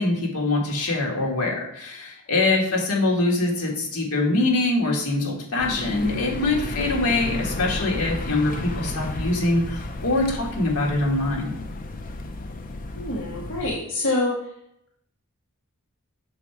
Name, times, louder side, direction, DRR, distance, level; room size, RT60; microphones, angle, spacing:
voice 1, 0.0-11.5, left 2 dB, 80° left, 0 dB, 1.6 m, -23 dB
voice 2, 2.4-2.8 12.9-14.5, left 2 dB, 60° left, -3 dB, 1.0 m, -27 dB
sound 1, 5.6-13.8, left 2 dB, 40° left, 0.5 m, -33 dB
6.3 x 3.9 x 4.6 m, 0.75 s
head